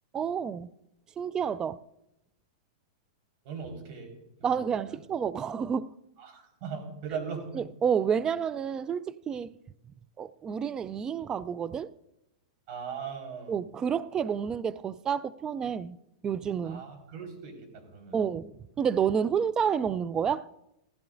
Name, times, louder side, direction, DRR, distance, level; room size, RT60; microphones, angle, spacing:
voice 1, 0.1-0.7 1.2-1.8 4.4-5.9 7.6-9.5 10.2-11.9 13.5-16.0 16.2-16.8 18.1-18.5 18.8-20.5, right 7 dB, 20° right, 0.3 m, -29 dB
voice 2, 3.4-4.1 4.4-5.0 6.2-7.6 12.7-13.6 16.6-17.6 17.9-18.3, right 6 dB, 50° right, 4.3 m, -39 dB
16.0 x 14.5 x 2.6 m
hypercardioid pair, 130°, 3 cm